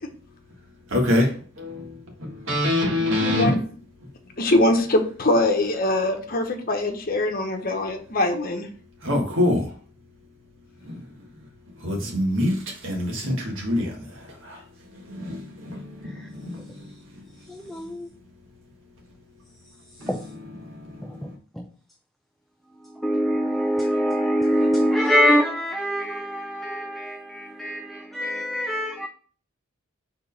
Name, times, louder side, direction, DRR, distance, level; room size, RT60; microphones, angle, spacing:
voice 1, 0.9-1.9 2.2-3.6 9.0-9.7 10.9-11.0 11.8-12.6 12.8-13.9 14.4-14.6 15.1-16.6 20.0-20.1, left 1 dB, 65° right, 1.7 m, -24 dB
voice 2, 3.2-3.7 4.4-8.7, left 1 dB, 45° left, 1.0 m, -22 dB
voice 3, 17.5-18.1 20.1-20.2 21.0-21.3 21.6-21.7 22.8-29.1, equal, ahead, 0.3 m, -24 dB
4.5 x 3.8 x 5.4 m
head